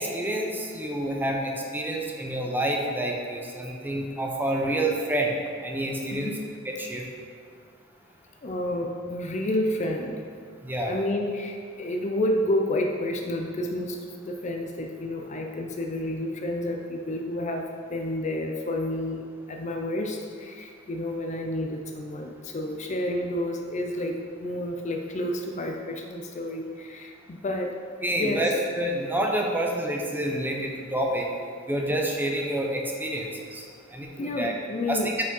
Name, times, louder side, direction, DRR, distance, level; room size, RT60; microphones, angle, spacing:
voice 1, 0.0-5.4 5.6-6.3 6.6-7.1 10.6-11.0 28.0-28.5 28.8-31.3 31.7-33.7 33.9-34.5 34.9-35.1, right 1 dB, 10° right, 0 dB, 0.7 m, -28 dB
voice 2, 6.1-6.5 8.4-10.3 10.8-27.8 28.1-28.6 34.2-35.2, left 1 dB, 35° left, 3 dB, 0.5 m, -30 dB
6.1 x 5.1 x 5.3 m, 2.1 s
head